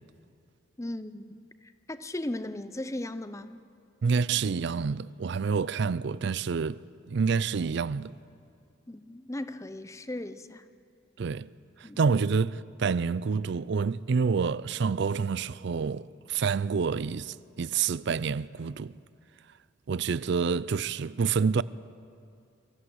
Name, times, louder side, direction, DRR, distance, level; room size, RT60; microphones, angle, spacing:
voice 1, 0.8-3.6 8.9-10.7 11.8-12.0, left 1 dB, 15° left, 0.6 m, -37 dB
voice 2, 4.0-6.8 7.1-8.1 11.2-11.5 11.8-18.9 19.9-21.6, right 5 dB, 55° right, 0.4 m, -28 dB
24.5 x 15.5 x 8.0 m
head